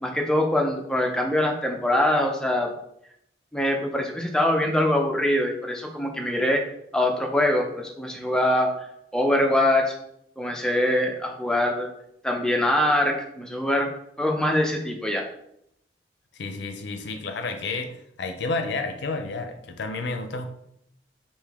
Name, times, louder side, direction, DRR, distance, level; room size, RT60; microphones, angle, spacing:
voice 1, 0.0-2.7 3.5-6.6 6.9-8.7 9.1-10.0 10.4-11.9 12.2-13.9 14.2-15.3, left 1 dB, 5° left, 1 dB, 0.4 m, -23 dB
voice 2, 16.3-20.5, left 3 dB, 70° left, 6 dB, 0.5 m, -31 dB
3.4 x 2.6 x 3.5 m, 0.76 s
head